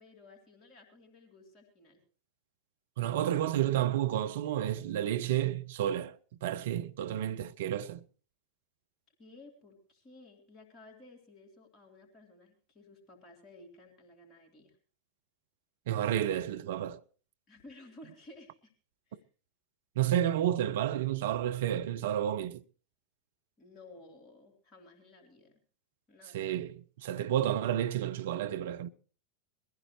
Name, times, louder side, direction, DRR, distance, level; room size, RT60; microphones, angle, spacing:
voice 1, 0.0-2.0 9.2-14.8 17.5-18.7 19.1-19.3 23.6-25.6 26.1-26.5, left 2 dB, 30° left, 3.9 m, -55 dB
voice 2, 3.0-8.0 15.9-17.0 20.0-22.6 26.3-28.9, right 11 dB, 55° right, 0.7 m, -31 dB
21.5 x 15.0 x 3.2 m
figure-of-eight pair, 90°, 0 cm